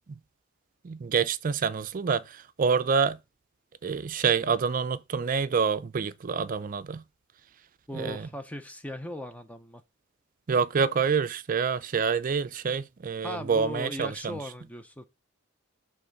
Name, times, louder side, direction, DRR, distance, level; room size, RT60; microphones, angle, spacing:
voice 1, 0.8-3.2 3.8-7.0 7.9-8.3 10.5-14.4, right 5 dB, 40° right, 0.4 m, -27 dB
voice 2, 7.9-9.8 13.2-15.1, left 1 dB, 5° left, 0.5 m, -38 dB
5.5 x 3.5 x 5.1 m
head